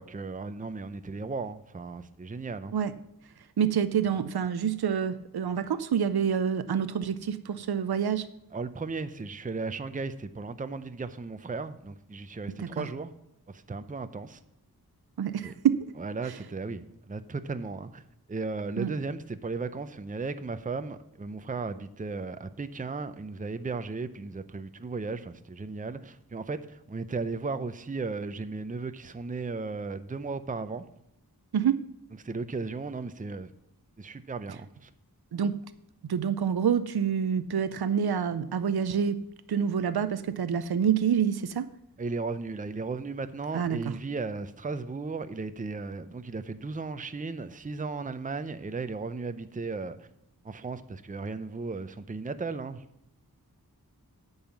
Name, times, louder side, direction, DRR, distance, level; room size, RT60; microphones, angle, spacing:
voice 1, 0.0-2.7 8.5-13.1 13.5-14.4 15.4-15.5 16.0-18.0 18.3-30.8 32.2-33.5 34.0-34.9 42.0-50.1 50.4-52.8, right 4 dB, 20° right, 0.5 m, -35 dB
voice 2, 3.6-8.3 12.5-12.8 15.2-15.8 16.2-16.4 18.8-18.9 31.5-31.8 35.3-35.6 36.1-39.2 39.5-41.7 43.5-43.8, right 8 dB, 80° right, 0.5 m, -27 dB
8.8 x 5.6 x 7.0 m
wide cardioid pair, 55°, 38 cm